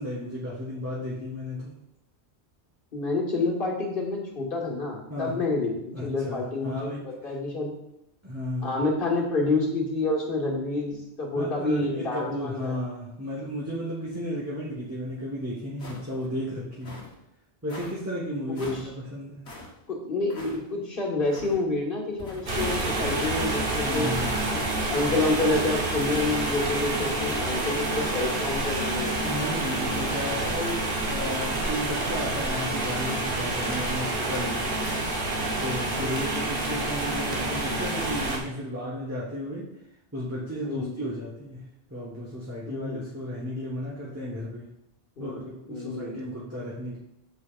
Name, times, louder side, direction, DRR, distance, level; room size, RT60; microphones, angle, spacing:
voice 1, 0.0-1.8 5.1-5.3 5.9-7.3 8.2-8.8 11.3-17.0 17.6-19.5 23.8-24.4 29.2-34.8 35.6-39.7 40.1-44.7 45.2-47.0, equal, 15° right, -6 dB, 1.2 m, -34 dB
voice 2, 2.9-6.9 7.2-7.7 8.6-12.8 18.5-18.8 19.9-24.1 24.5-29.1 30.3-30.4 36.0-36.1 40.6-40.9 42.7-43.0 45.2-45.4 45.7-46.1, left 2 dB, 55° left, -2 dB, 1.7 m, -28 dB
sound 1, 15.8-16.3 16.8-17.1 17.7-17.9 18.6-18.9 19.4-19.7 20.3-20.6 21.3-21.6 22.2-22.7 23.2-23.5 24.1-24.6 25.1-25.5 26.1-26.5, left 2 dB, 90° left, 1.7 m, -43 dB
sound 2, 22.5-38.4, right 2 dB, 55° right, 1.3 m, -28 dB
8.3 x 6.7 x 2.4 m, 0.81 s
omnidirectional pair, 1.1 m